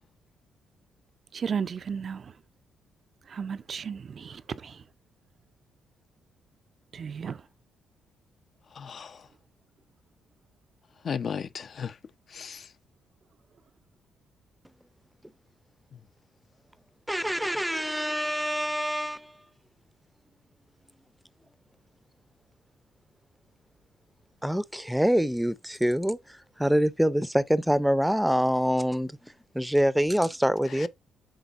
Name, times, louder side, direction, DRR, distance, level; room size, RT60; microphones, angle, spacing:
voice 1, 1.3-2.2 3.3-4.7 6.9-7.4, right 6 dB, 50° right, 0.5 m, -33 dB
voice 2, 8.8-9.1 11.0-11.9 12.3-12.6, left 7 dB, 50° left, 0.6 m, -34 dB
voice 3, 17.1-19.3 24.4-30.9, equal, ahead, 0.6 m, -25 dB
11.5 x 3.8 x 2.5 m
cardioid pair, 90°, 0 cm